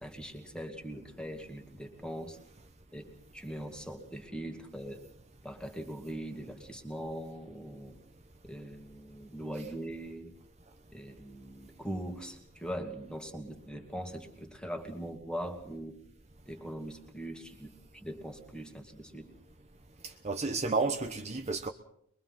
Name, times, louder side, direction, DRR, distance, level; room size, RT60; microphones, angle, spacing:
voice 1, 0.0-2.4 2.9-5.0 5.4-8.0 8.4-10.3 10.9-16.0 16.5-19.3, equal, 5° left, 2.4 m, -41 dB
voice 2, 20.2-21.7, right 3 dB, 30° right, 1.0 m, -31 dB
23.5 x 22.5 x 5.8 m
head